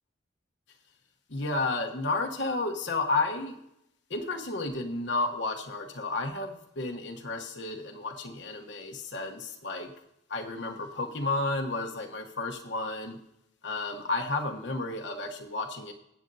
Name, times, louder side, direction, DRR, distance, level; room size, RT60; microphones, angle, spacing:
voice 1, 1.3-3.6 4.1-9.9 10.3-13.2 13.6-15.9, left 2 dB, 65° left, 2 dB, 1.0 m, -32 dB
15.0 x 8.2 x 2.7 m, 0.80 s
head